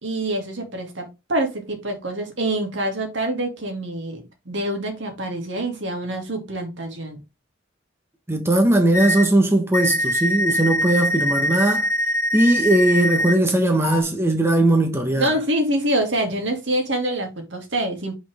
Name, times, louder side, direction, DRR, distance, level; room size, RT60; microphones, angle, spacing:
voice 1, 0.0-7.2 15.2-18.1, right 1 dB, 70° right, 2.4 m, -26 dB
voice 2, 8.3-11.9 12.3-15.3, right 1 dB, 15° right, 1.1 m, -19 dB
sound 1, 8.9-9.2 9.7-13.3 13.8-14.0, equal, 15° left, 1.0 m, -23 dB
6.3 x 5.9 x 3.5 m
head